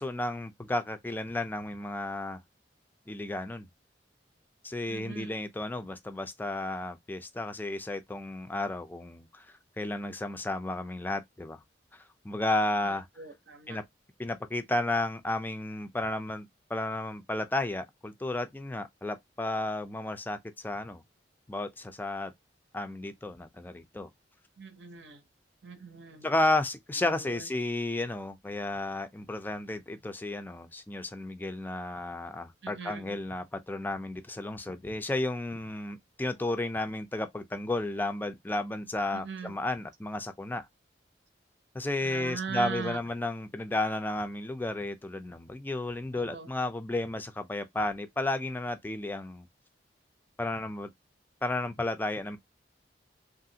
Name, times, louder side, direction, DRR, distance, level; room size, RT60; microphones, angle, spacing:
voice 1, 0.0-2.4 3.1-3.7 4.6-9.5 9.8-11.6 11.9-13.1 13.7-13.8 14.2-21.0 21.5-22.3 22.7-24.1 26.2-40.6 41.7-49.5 50.4-50.9 51.4-52.4, left 2 dB, 10° left, 0.4 m, -33 dB
voice 2, 4.9-5.4 12.8-13.8 24.6-25.2 25.6-26.3 27.1-27.5 32.6-33.2 39.1-39.5 42.0-43.0 46.1-46.5, right 5 dB, 75° right, 0.7 m, -40 dB
3.0 x 2.5 x 2.7 m
head